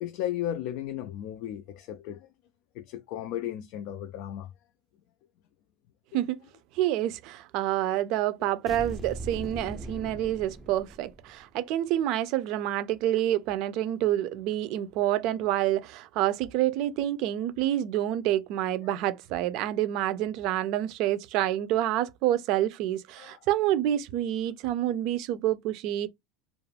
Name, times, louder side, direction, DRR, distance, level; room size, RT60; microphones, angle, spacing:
voice 1, 0.0-2.3 2.7-4.5 6.1-6.2 7.8-8.0 23.2-23.4, left 11 dB, 65° left, 0.3 m, -35 dB
voice 2, 6.7-26.1, right 13 dB, 60° right, 0.4 m, -28 dB
sound 1, 8.7-11.4, right 1 dB, ahead, 0.5 m, -40 dB
2.4 x 2.0 x 3.2 m
supercardioid pair, 120°, 0 cm